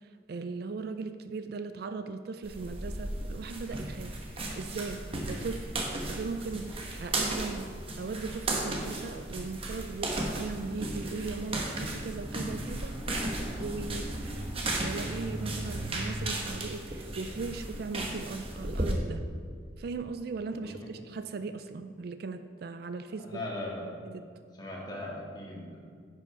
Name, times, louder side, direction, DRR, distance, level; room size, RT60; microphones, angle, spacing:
voice 1, 0.3-4.1 4.6-5.7 6.1-13.0 13.3-14.1 14.8-19.3 19.8-23.4 24.1-24.2, right 4 dB, 55° right, 10 dB, 0.3 m, -38 dB
sound 1, 2.4-18.9, right 1 dB, 30° right, 1.1 m, -35 dB
voice 2, 23.3-23.9 24.6-25.8, left 1 dB, 20° left, -4 dB, 1.9 m, -38 dB
9.8 x 5.6 x 5.2 m, 2.1 s
head